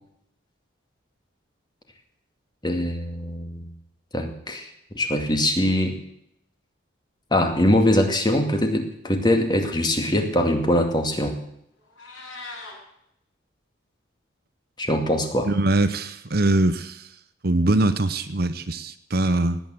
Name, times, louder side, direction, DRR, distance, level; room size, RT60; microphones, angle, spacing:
voice 1, 2.6-3.7 4.1-4.7 4.9-6.0 7.3-11.3 14.8-15.5, left 1 dB, 20° left, 5 dB, 2.3 m, -22 dB
Meow, 11.8-12.7, left 3 dB, 85° left, 7.9 m, -40 dB
voice 2, 15.4-17.1 17.4-19.6, right 2 dB, 50° right, 11 dB, 0.9 m, -22 dB
18.5 x 9.3 x 7.7 m, 0.76 s
head